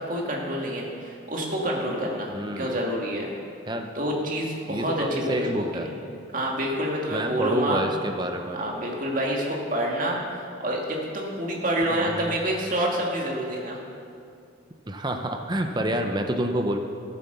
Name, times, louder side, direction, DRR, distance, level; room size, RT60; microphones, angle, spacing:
voice 1, 0.1-2.3 2.6-3.3 3.9-5.9 6.3-7.8 8.5-10.2 10.6-13.8, equal, 45° right, -1 dB, 2.2 m, -27 dB
voice 2, 2.3-2.8 3.7-3.9 4.7-5.9 7.1-8.6 11.9-12.3 14.9-16.8, right 1 dB, 25° right, 5 dB, 0.7 m, -28 dB
14.0 x 8.5 x 6.8 m, 2.4 s
head